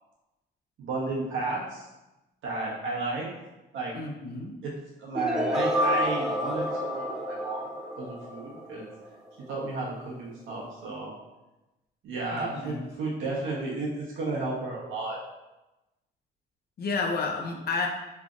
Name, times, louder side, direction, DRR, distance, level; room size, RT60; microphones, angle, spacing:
voice 1, 0.8-1.9 2.4-3.3 3.7-3.9 4.6-4.7 5.0-8.9 9.5-11.1 12.0-15.2, right 3 dB, 80° right, -4 dB, 1.1 m, -33 dB
voice 2, 3.9-4.5 12.3-12.9 16.8-17.9, left 4 dB, 55° left, 2 dB, 0.7 m, -31 dB
sound 1, 5.1-9.1, equal, 5° right, 0.5 m, -29 dB
3.6 x 3.2 x 2.5 m, 1.0 s
cardioid pair, 90°, 20 cm